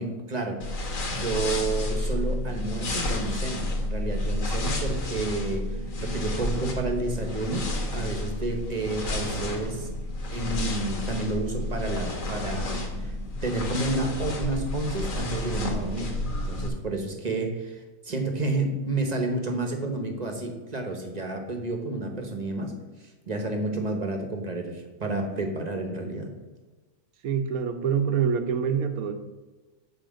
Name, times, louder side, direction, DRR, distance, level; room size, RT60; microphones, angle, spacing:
voice 1, 0.0-9.9 10.3-13.1 13.4-22.7 23.3-26.3, right 2 dB, 30° right, 4 dB, 1.0 m, -30 dB
sound 1, 0.6-16.7, left 1 dB, 65° left, 1.6 m, -30 dB
voice 2, 27.2-29.1, right 7 dB, 75° right, 8 dB, 1.2 m, -25 dB
7.6 x 4.7 x 6.3 m, 1.2 s
omnidirectional pair, 1.6 m